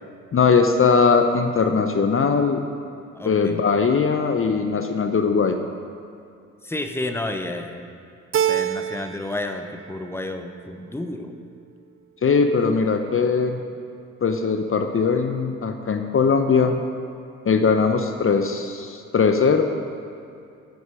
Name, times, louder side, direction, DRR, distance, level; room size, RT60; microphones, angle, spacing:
voice 1, 0.3-2.6 3.2-5.6 12.2-13.6 14.2-16.8 17.4-19.6, left 5 dB, 35° left, 6 dB, 1.1 m, -20 dB
voice 2, 3.1-3.6 6.6-7.9 8.5-11.3, left 2 dB, 5° left, 6 dB, 1.3 m, -31 dB
Keyboard (musical), 8.3-9.4 9.8-10.5, right 10 dB, 35° right, 0.7 m, -26 dB
14.5 x 11.0 x 5.1 m, 2.5 s
figure-of-eight pair, 40°, 38 cm